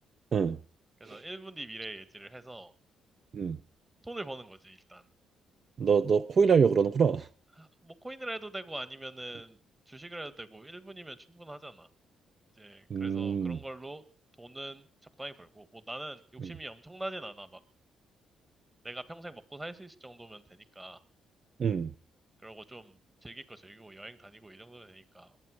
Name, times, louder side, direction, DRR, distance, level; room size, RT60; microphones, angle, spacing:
voice 1, 1.0-2.7 4.0-5.0 7.6-9.6 9.9-11.9 12.6-14.0 14.4-14.9 15.2-17.6 18.8-21.0 22.4-25.3, right 1 dB, 15° right, 1.6 m, -43 dB
voice 2, 5.8-7.3 12.9-13.6 21.6-21.9, right 6 dB, 45° right, 0.7 m, -25 dB
21.5 x 9.0 x 6.4 m
cardioid pair, 90°, 0 cm